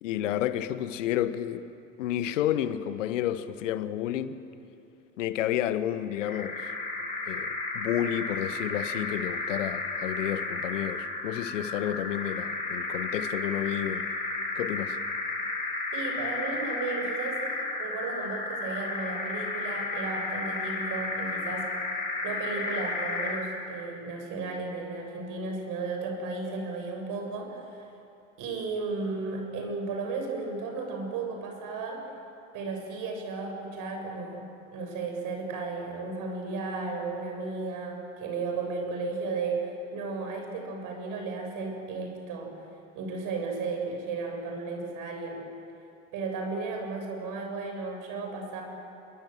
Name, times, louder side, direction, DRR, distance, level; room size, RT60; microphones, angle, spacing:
voice 1, 0.0-1.6 2.0-4.4 5.2-6.7 7.3-14.1 14.6-15.0, left 11 dB, 75° left, 1.3 m, -30 dB
sound 1, 6.1-23.5, left 3 dB, 20° left, 7.9 m, -33 dB
voice 2, 15.9-17.4 17.7-21.7 22.2-27.9 28.4-32.1 32.5-42.5 42.9-45.4 46.1-48.6, right 3 dB, 55° right, 7.3 m, -34 dB
28.0 x 22.5 x 7.8 m
hypercardioid pair, 70°, 38 cm